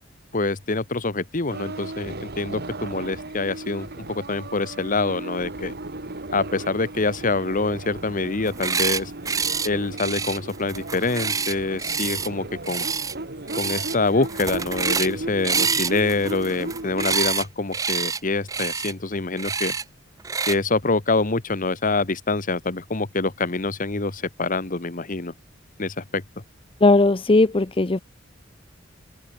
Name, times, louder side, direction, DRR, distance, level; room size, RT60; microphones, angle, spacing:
voice 1, 0.3-5.7 6.3-9.1 9.6-12.9 13.5-19.7 20.5-25.3 25.8-26.2, left 3 dB, 45° left, 1.5 m, -25 dB
sound 1, 1.5-17.4, right 2 dB, 55° right, 2.3 m, -36 dB
sound 2, 8.4-9.0 9.3-9.7 10.0-12.3 12.6-13.1 13.5-14.0 14.2-15.1 15.4-17.4 17.7-18.2 18.5-18.9 19.4-19.8 20.2-20.6, right 5 dB, 15° right, 0.5 m, -26 dB
voice 2, 26.8-28.0, left 2 dB, 30° left, 0.7 m, -17 dB
open air
head